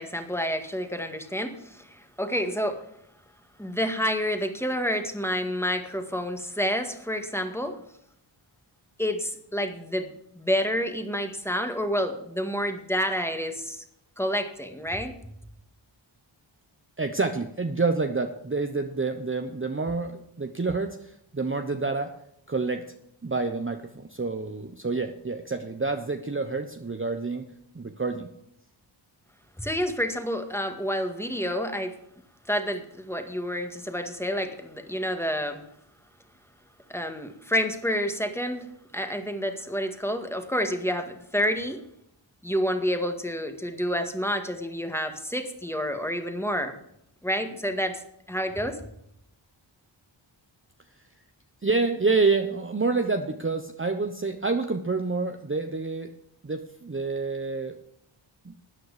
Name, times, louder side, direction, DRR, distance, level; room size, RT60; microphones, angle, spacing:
voice 1, 0.0-2.8 3.6-7.8 9.0-13.8 14.2-15.1 29.6-31.9 32.5-35.6 36.9-38.7 38.9-41.8 42.4-46.7 47.2-48.0 48.3-48.8, equal, 5° left, 6 dB, 1.8 m, -29 dB
voice 2, 17.0-22.1 22.5-22.8 23.2-27.5 27.7-28.3 51.6-56.1 56.4-57.8 58.4-58.5, right 3 dB, 25° right, 6 dB, 1.0 m, -28 dB
13.5 x 9.2 x 5.0 m, 0.75 s
wide cardioid pair, 60°, 48 cm